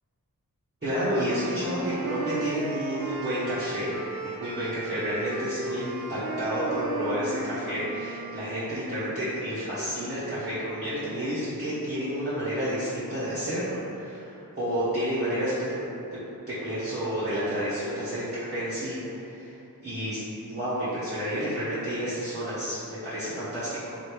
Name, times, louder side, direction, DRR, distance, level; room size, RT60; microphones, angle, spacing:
voice 1, 0.8-3.9 4.2-15.8 16.5-20.2 20.5-24.0, equal, 30° right, -14 dB, 1.2 m, -30 dB
sound 1, 1.1-8.6, right 2 dB, 70° right, 0.5 m, -35 dB
3.3 x 2.8 x 4.5 m, 2.9 s
wide cardioid pair, 80°, 36 cm